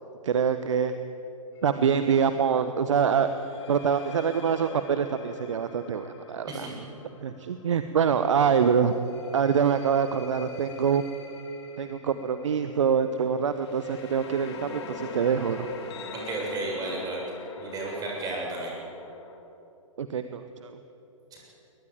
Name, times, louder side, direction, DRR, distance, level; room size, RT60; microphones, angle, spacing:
voice 1, 0.2-0.9 1.6-3.3 3.7-6.7 7.2-8.9 9.3-11.1 11.8-15.7 20.0-20.8, right 7 dB, 60° right, 10 dB, 1.2 m, -25 dB
sound 1, 1.6-1.8 3.3-8.1 8.9-19.4, left 3 dB, 50° left, 3.2 m, -44 dB
voice 2, 16.1-17.2 17.6-18.7 21.3-21.4, right 2 dB, 20° right, -2 dB, 7.2 m, -33 dB
22.0 x 20.0 x 9.2 m, 2.9 s
figure-of-eight pair, 115°, 18 cm